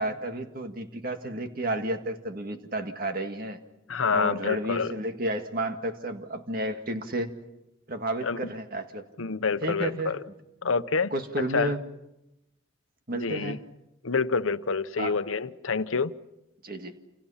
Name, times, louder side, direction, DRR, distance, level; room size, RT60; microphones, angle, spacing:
voice 1, 0.0-3.6 4.1-7.3 7.9-9.1 9.6-10.2 11.1-11.8 13.1-13.6 15.0-15.1 16.6-17.0, right 1 dB, 45° right, 2.0 m, -31 dB
voice 2, 3.9-4.9 8.2-8.4 9.2-10.2 10.6-11.1 11.5-11.7 13.2-13.6 14.0-16.1, left 5 dB, 90° left, 0.9 m, -27 dB
29.0 x 28.0 x 5.7 m
head